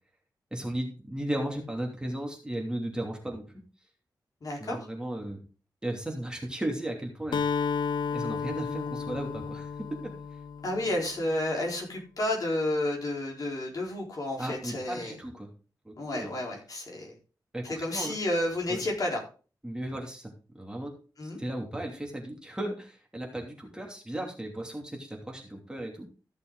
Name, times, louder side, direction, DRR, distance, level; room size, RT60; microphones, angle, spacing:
voice 1, 0.5-3.5 4.6-5.4 5.8-7.4 8.1-10.1 14.4-15.5 15.8-16.3 17.5-18.1 18.7-18.8 19.6-20.9 21.2-26.1, right 1 dB, 10° right, 0 dB, 2.8 m, -35 dB
voice 2, 4.4-4.8 10.6-15.2 16.0-17.1 17.6-19.2 21.2-21.4, left 1 dB, 55° left, -1 dB, 4.2 m, -31 dB
Acoustic guitar, 7.3-11.2, left 6 dB, 85° left, 0.6 m, -32 dB
14.0 x 6.6 x 4.0 m, 0.36 s
wide cardioid pair, 110°, 7 cm